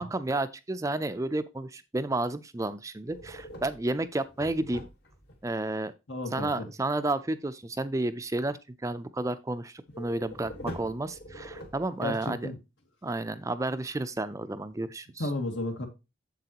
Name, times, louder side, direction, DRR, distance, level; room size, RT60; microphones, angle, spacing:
voice 1, 0.0-4.9 5.4-5.9 6.3-12.5 13.0-15.3, right 2 dB, 15° right, 0.4 m, -31 dB
sound 1, 3.1-5.4 9.9-12.2, equal, 55° left, 1.6 m, -43 dB
voice 2, 6.1-6.7 10.6-10.7 12.0-12.6 15.2-15.9, left 2 dB, 80° left, 1.9 m, -33 dB
7.7 x 7.4 x 2.9 m
head